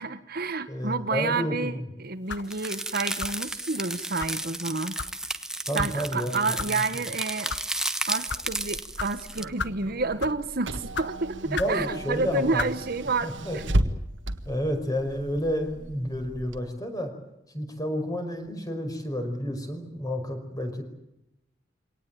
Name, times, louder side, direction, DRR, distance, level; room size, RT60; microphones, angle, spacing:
voice 1, 0.0-5.0 5.7-7.6 8.1-13.7, right 3 dB, 55° right, 10 dB, 1.3 m, -29 dB
voice 2, 0.7-1.9 5.7-6.4 11.5-12.7 13.2-13.6 14.4-17.1 17.5-20.8, equal, 20° left, 5 dB, 5.3 m, -30 dB
sound 1, 2.3-2.5 3.2-3.5 4.2-4.4 5.0-5.2 5.8-5.9 6.6-6.7 7.3-7.6 8.3-8.4 9.0-9.1 9.6-9.8 10.2-10.4 10.9-11.1 11.5-11.8 12.6-12.8, left 5 dB, 65° left, 1.0 m, -33 dB
sound 2, 2.5-9.4, right 1 dB, 5° right, 1.2 m, -33 dB
Car / Engine, 8.3-16.6, right 1 dB, 70° right, 1.7 m, -34 dB
24.5 x 18.5 x 9.0 m, 0.87 s
head